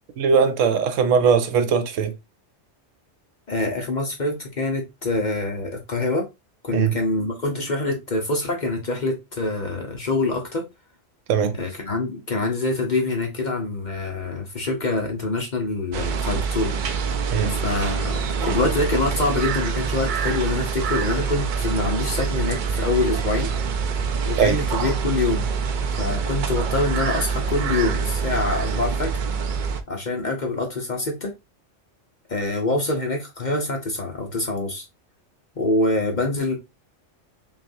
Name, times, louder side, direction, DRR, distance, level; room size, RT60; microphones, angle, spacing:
voice 1, 0.2-2.1 6.7-7.0 11.3-11.5 17.3-17.6 24.4-24.6, right 6 dB, 85° right, 1.0 m, -20 dB
voice 2, 3.5-6.3 6.6-10.6 11.6-16.7 17.5-23.5 24.3-25.5 26.0-29.1 29.9-31.3 32.3-34.8 35.6-36.6, left 2 dB, 40° left, 0.9 m, -25 dB
sound 1, 15.9-29.8, right 5 dB, 60° right, 0.5 m, -25 dB
5.8 x 2.5 x 2.6 m
omnidirectional pair, 1.3 m